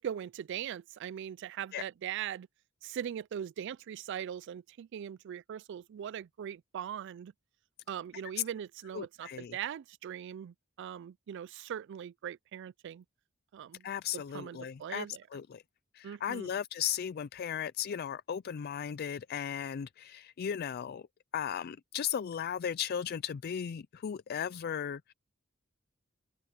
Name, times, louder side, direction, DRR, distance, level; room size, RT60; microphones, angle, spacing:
voice 1, 0.0-2.5 2.8-7.3 7.9-13.0 13.5-13.9 14.1-15.2 16.0-16.6, right 9 dB, 60° right, 0.3 m, -40 dB
voice 2, 8.9-9.6 13.8-15.1 15.3-15.6 15.9-21.0 21.3-25.1, left 8 dB, 50° left, 0.4 m, -36 dB
head